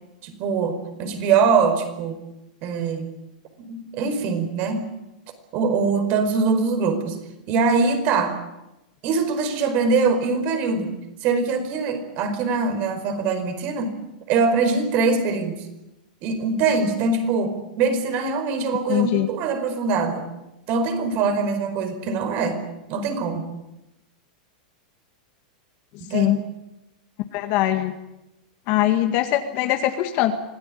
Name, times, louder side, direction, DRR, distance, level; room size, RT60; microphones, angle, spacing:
voice 1, 0.2-2.2 2.6-3.1 3.6-4.8 5.5-7.2 7.5-8.4 9.0-10.9 11.2-13.9 14.3-15.5 16.2-20.2 20.7-22.6 22.9-23.5 26.0-26.3, right 4 dB, 40° right, 8 dB, 4.9 m, -23 dB
voice 2, 18.9-19.3 26.1-26.4 27.3-27.9 28.7-30.4, left 13 dB, 45° left, 6 dB, 1.8 m, -21 dB
25.5 x 17.0 x 10.0 m, 0.94 s
supercardioid pair, 150°, 4 cm